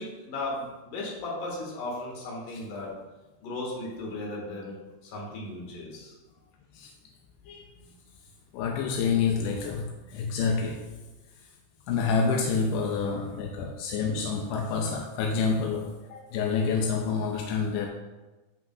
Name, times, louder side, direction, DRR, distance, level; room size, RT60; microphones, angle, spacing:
voice 1, 0.0-2.9 3.4-4.7 5.1-6.1 7.5-7.6 16.1-16.2, left 2 dB, 60° left, -3 dB, 3.3 m, -36 dB
voice 2, 8.5-10.9 11.9-16.0 16.3-17.9, left 5 dB, 85° left, 1 dB, 2.6 m, -28 dB
13.5 x 5.3 x 2.5 m, 1.1 s
omnidirectional pair, 4.8 m